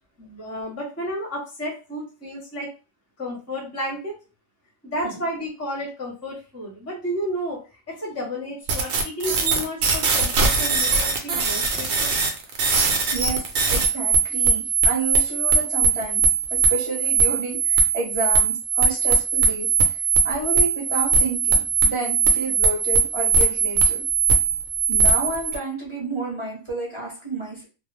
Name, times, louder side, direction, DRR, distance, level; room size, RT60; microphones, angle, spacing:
voice 1, 0.2-2.7 3.2-4.1 4.8-7.6 7.9-12.1, equal, 15° left, -2 dB, 0.7 m, -32 dB
sound 1, 8.7-25.5, right 5 dB, 65° right, 0.8 m, -20 dB
voice 2, 13.1-16.2 16.5-20.0 20.2-24.0 24.9-27.6, right 2 dB, 25° right, -4 dB, 0.8 m, -30 dB
2.3 x 2.0 x 3.1 m, 0.34 s
omnidirectional pair, 1.4 m